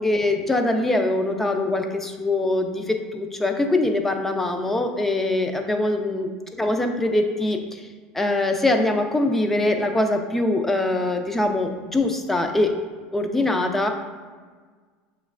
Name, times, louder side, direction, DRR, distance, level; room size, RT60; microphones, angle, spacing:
voice 1, 0.0-6.3 6.6-7.8 8.1-12.7 13.1-13.9, left 2 dB, 10° left, 5 dB, 0.4 m, -23 dB
6.5 x 3.1 x 2.4 m, 1.5 s
supercardioid pair, 145°, 3 cm